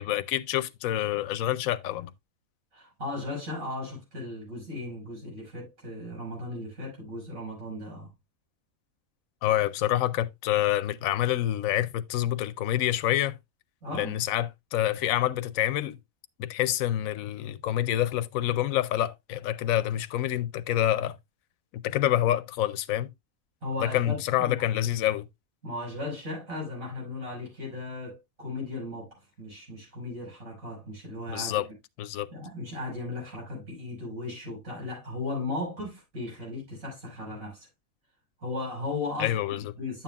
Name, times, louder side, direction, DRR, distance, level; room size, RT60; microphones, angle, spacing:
voice 1, 0.0-2.1 9.4-13.4 13.9-16.0 16.4-21.2 21.7-23.1 23.8-25.3 31.3-31.7 32.0-32.3 39.2-39.7, left 13 dB, 75° left, 1.0 m, -27 dB
voice 2, 2.7-8.1 13.8-14.2 23.6-24.7 25.6-31.7 32.3-37.7 38.4-39.3 39.8-40.0, left 2 dB, 75° right, 5.6 m, -36 dB
10.5 x 7.2 x 2.3 m
omnidirectional pair, 1.5 m